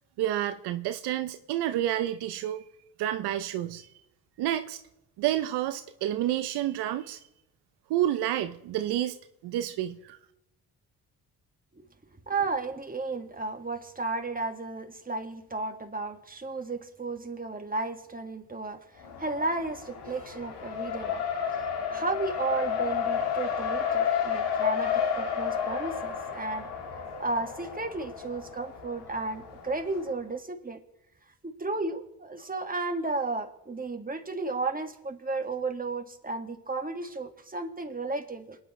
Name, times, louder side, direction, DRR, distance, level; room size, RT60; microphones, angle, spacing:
voice 1, 0.2-2.6 3.0-3.9 4.4-4.8 5.2-7.2 7.9-9.2 9.4-10.2, right 12 dB, 85° right, 10 dB, 0.6 m, -29 dB
voice 2, 12.3-21.2 21.5-21.6 21.9-26.7 27.2-30.8 31.4-38.6, right 3 dB, 20° right, 5 dB, 1.9 m, -33 dB
Race car auto racing, 19.0-30.0, left 7 dB, 80° left, 1.8 m, -31 dB
27.0 x 9.9 x 3.2 m, 0.89 s
supercardioid pair, 50°, 39 cm